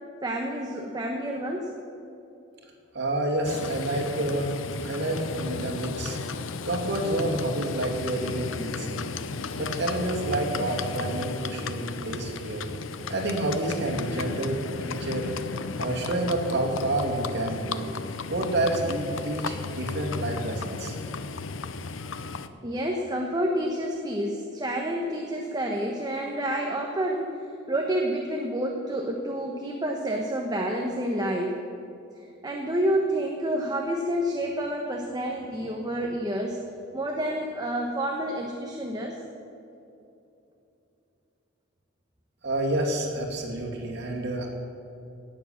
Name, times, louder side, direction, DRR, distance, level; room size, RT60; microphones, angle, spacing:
voice 1, 0.2-1.7 22.6-27.3 27.7-31.6 32.4-36.6 36.9-39.2, right 1 dB, 20° right, 1 dB, 1.1 m, -29 dB
voice 2, 2.9-4.5 4.8-6.2 6.6-9.1 9.5-12.7 13.1-15.3 15.7-17.8 18.3-20.9 42.4-44.5, right 1 dB, 60° right, -1 dB, 2.6 m, -29 dB
Livestock farm animals working animals, 3.4-22.5, left 4 dB, 80° left, 0.7 m, -34 dB
18.0 x 7.3 x 7.3 m, 2.8 s
head